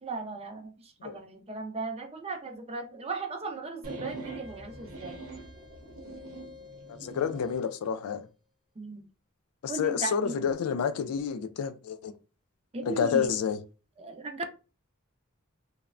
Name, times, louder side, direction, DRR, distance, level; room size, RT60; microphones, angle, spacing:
voice 1, 0.0-5.2 8.8-9.0 9.7-10.4 12.7-13.3 14.0-14.4, right 3 dB, 30° right, 0.5 m, -37 dB
sound 1, 3.8-7.6, right 2 dB, 80° right, 0.7 m, -43 dB
voice 2, 7.0-8.3 9.6-12.1 12.8-13.6, left 7 dB, 80° left, 0.3 m, -29 dB
3.1 x 2.0 x 2.4 m
head